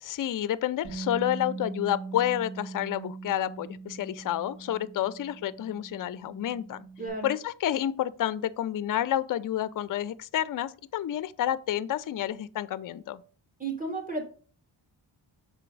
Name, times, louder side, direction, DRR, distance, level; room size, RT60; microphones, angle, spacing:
voice 1, 0.0-6.9 7.2-13.2, left 12 dB, 45° left, 0.5 m, -29 dB
Bass guitar, 0.8-7.1, right 4 dB, 75° right, 3.0 m, -41 dB
voice 2, 7.0-7.3 13.6-14.2, right 3 dB, 15° right, 2.6 m, -33 dB
6.8 x 4.4 x 3.9 m
cardioid pair, 75°, 47 cm